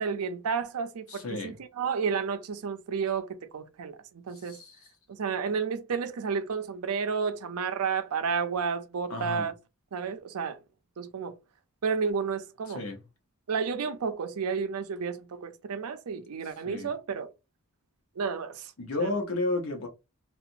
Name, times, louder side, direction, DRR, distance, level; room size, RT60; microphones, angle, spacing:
voice 1, 0.0-4.6 5.1-9.5 9.9-10.6 11.0-11.4 11.8-12.8 13.5-17.3 18.2-18.7 19.0-19.1, right 5 dB, 90° right, 0.5 m, -31 dB
voice 2, 1.1-1.5 4.3-4.9 9.1-9.5 12.7-13.0 16.6-16.9 18.8-19.9, left 2 dB, 65° left, 0.8 m, -32 dB
2.8 x 2.3 x 2.5 m
head